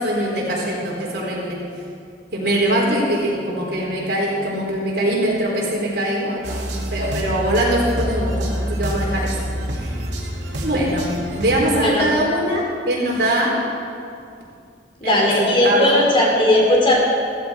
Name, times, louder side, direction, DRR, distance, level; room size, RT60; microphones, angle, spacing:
voice 1, 0.0-1.6 2.3-6.6 6.9-9.3 9.7-10.0 10.6-13.6 15.0-16.0, right 1 dB, 65° right, -3 dB, 4.1 m, -22 dB
sound 1, 6.4-11.8, equal, 80° right, 2.3 m, -27 dB
voice 2, 15.0-17.0, left 1 dB, 30° left, -2 dB, 3.1 m, -17 dB
15.5 x 15.0 x 4.4 m, 2.3 s
head